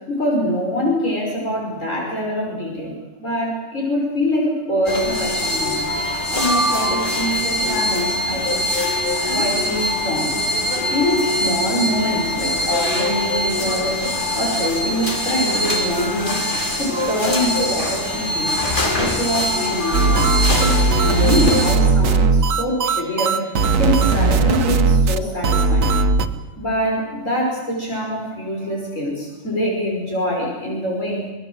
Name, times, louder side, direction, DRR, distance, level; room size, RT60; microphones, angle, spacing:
voice 1, 0.1-5.8 6.3-8.6 9.3-10.4 10.9-16.4 16.8-18.7 19.0-20.3 20.6-26.0 26.6-31.3, equal, 75° left, -1 dB, 6.0 m, -24 dB
sound 1, 4.9-21.8, left 1 dB, 40° left, 3.3 m, -22 dB
sound 2, 19.9-26.3, right 3 dB, 85° right, 1.6 m, -17 dB
25.5 x 20.5 x 7.9 m, 1.2 s
omnidirectional pair, 1.3 m